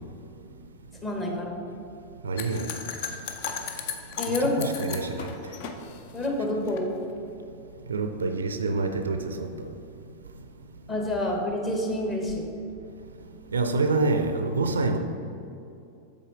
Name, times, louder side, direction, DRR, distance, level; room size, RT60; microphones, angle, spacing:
voice 1, 1.0-1.6 4.2-4.5 6.1-6.9 10.9-12.5, left 1 dB, 20° left, 0 dB, 1.1 m, -28 dB
voice 2, 2.2-2.7 4.3-5.3 7.9-9.7 13.5-15.0, right 3 dB, 70° right, 7 dB, 0.4 m, -27 dB
sound 1, 2.4-6.8, left 6 dB, 50° left, 0.5 m, -36 dB
7.1 x 4.1 x 3.8 m, 2.6 s
figure-of-eight pair, 90°, 0 cm